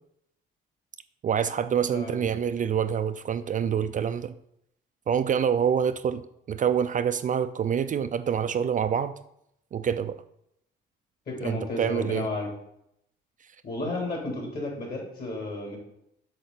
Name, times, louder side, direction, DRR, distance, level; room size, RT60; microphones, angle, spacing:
voice 1, 1.2-4.3 5.1-9.1 9.7-10.2 11.4-12.3, right 8 dB, 40° right, 11 dB, 0.4 m, -26 dB
voice 2, 11.3-12.5 13.6-15.8, left 2 dB, 50° left, -1 dB, 3.4 m, -32 dB
7.8 x 6.3 x 4.1 m, 0.77 s
cardioid pair, 90°, 20 cm